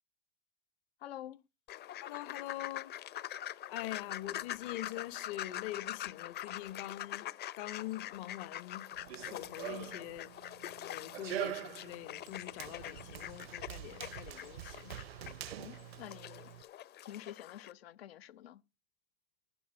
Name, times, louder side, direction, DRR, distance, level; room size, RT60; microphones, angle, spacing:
voice 1, 1.0-1.4 15.6-16.5 17.1-18.6, left 12 dB, 85° left, 0.9 m, -48 dB
sound 1, 1.7-17.7, left 12 dB, 35° left, 0.7 m, -44 dB
voice 2, 2.0-3.0 3.7-7.3 7.6-8.8 9.2-10.3 10.9-14.9, left 15 dB, 60° left, 1.3 m, -44 dB
Run, 8.9-16.6, right 14 dB, 90° right, 0.7 m, -45 dB
12.5 x 9.8 x 5.5 m
hypercardioid pair, 110°, 30 cm